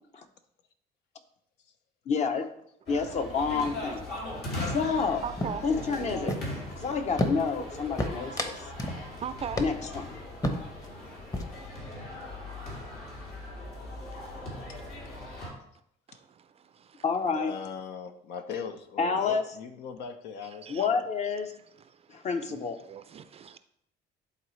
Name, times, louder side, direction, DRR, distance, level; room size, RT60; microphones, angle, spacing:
voice 1, 2.1-2.5 2.9-4.0 4.6-5.2 5.6-6.3 6.8-8.5 9.6-10.1 17.0-17.5 19.0-19.5 20.7-21.5 22.1-22.8, left 5 dB, 40° left, 7 dB, 0.8 m, -29 dB
sound 1, 2.9-15.5, left 1 dB, 65° left, 2.6 m, -39 dB
sound 2, 3.0-3.4 3.7-4.0 4.3-5.1 5.4-6.7 7.2-7.7 8.0-9.0 9.3-9.4 9.6-10.0 10.4-10.9 11.2-11.7, left 1 dB, 20° left, 0.9 m, -32 dB
voice 2, 4.3-4.8 5.2-7.0 7.8-9.6 10.2-10.5 12.0-12.4 12.9-13.3 13.9-14.5 16.1-17.0 20.4-20.9 21.5-23.6, right 7 dB, 35° right, 11 dB, 0.4 m, -43 dB
voice 3, 17.3-21.1, left 6 dB, 85° left, 8 dB, 0.8 m, -40 dB
11.0 x 4.0 x 3.2 m, 0.72 s
cardioid pair, 110°, 17 cm